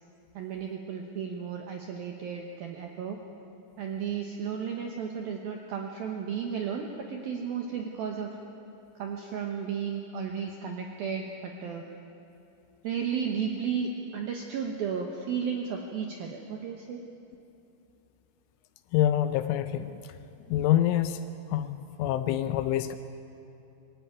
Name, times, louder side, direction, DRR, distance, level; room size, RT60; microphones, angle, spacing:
voice 1, 0.3-3.2 3.8-8.3 9.0-11.8 12.8-17.0, right 7 dB, 75° right, 2 dB, 2.2 m, -33 dB
voice 2, 18.9-20.0 20.5-21.2 21.5-23.0, left 12 dB, 80° left, 10 dB, 2.9 m, -26 dB
23.5 x 16.5 x 9.5 m, 2.7 s
omnidirectional pair, 6.0 m